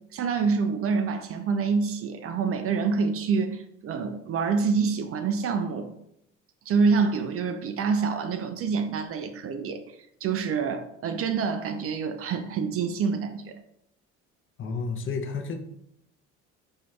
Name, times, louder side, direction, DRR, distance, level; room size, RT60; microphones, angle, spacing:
voice 1, 0.1-5.9 6.7-9.8 10.2-13.5, right 5 dB, 40° right, 8 dB, 0.4 m, -26 dB
voice 2, 14.6-15.5, left 4 dB, 35° left, 5 dB, 0.6 m, -31 dB
4.4 x 2.6 x 2.3 m, 0.76 s
hypercardioid pair, 65°, 36 cm